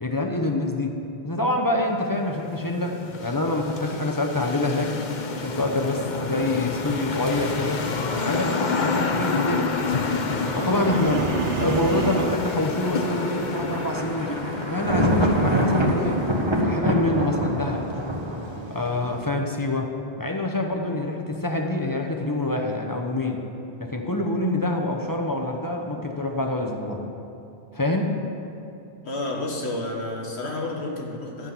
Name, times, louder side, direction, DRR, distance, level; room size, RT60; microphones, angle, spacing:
voice 1, 0.0-1.0 1.2-5.0 5.4-7.8 8.1-9.7 10.6-11.3 11.6-16.2 16.5-17.8 18.7-19.9 20.2-23.4 23.8-27.0 27.7-28.2, left 2 dB, 20° left, 2 dB, 0.9 m, -26 dB
sound 1, 2.1-16.6, left 4 dB, 50° left, 0.9 m, -29 dB
sound 2, 10.4-12.5, right 7 dB, 60° right, 0.6 m, -28 dB
Thunder, 12.8-19.2, equal, 25° right, 1.2 m, -26 dB
voice 2, 29.0-31.5, left 2 dB, 85° left, 0 dB, 1.8 m, -30 dB
12.0 x 9.7 x 5.6 m, 2.7 s
omnidirectional pair, 1.1 m